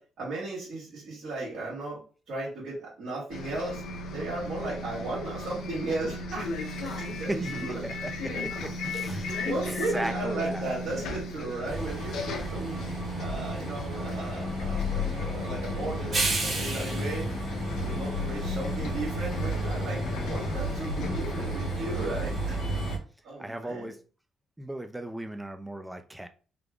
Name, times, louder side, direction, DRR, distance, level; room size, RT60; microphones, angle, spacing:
voice 1, 0.0-2.0 2.3-3.8 4.1-6.5 6.8-7.8 8.3-8.5 8.9-12.8 13.2-17.3 17.8-22.6 23.2-23.9, right 2 dB, 75° right, -8 dB, 1.9 m, -35 dB
Bus, 3.3-23.0, left 1 dB, 85° left, 0.8 m, -34 dB
voice 2, 6.8-9.5 9.9-10.7 23.4-24.0 24.6-26.3, right 1 dB, 10° right, 8 dB, 0.5 m, -37 dB
Train, 11.7-23.0, right 2 dB, 45° right, 1.4 m, -35 dB
3.7 x 2.2 x 3.4 m, 0.38 s
cardioid pair, 90°, 0 cm